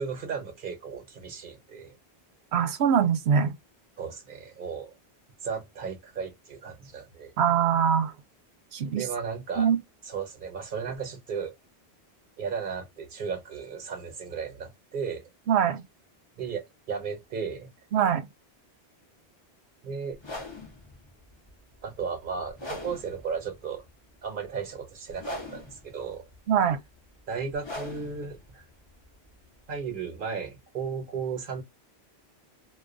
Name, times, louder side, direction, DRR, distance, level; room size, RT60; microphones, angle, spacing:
voice 1, 0.0-2.0 4.0-4.9 5.4-7.3 9.0-9.7 10.0-11.5 12.4-15.3 16.4-17.7 19.8-20.2 21.8-23.8 24.2-26.3 27.3-28.6 29.7-31.6, right 6 dB, 55° right, 1.0 m, -35 dB
voice 2, 2.5-3.5 7.4-8.1 8.7-9.0 9.6-9.8 15.5-15.8 17.9-18.3 26.5-26.8, right 8 dB, 85° right, 0.9 m, -23 dB
sound 1, 20.2-30.0, left 2 dB, 30° left, 0.8 m, -43 dB
2.4 x 2.3 x 2.4 m
omnidirectional pair, 1.1 m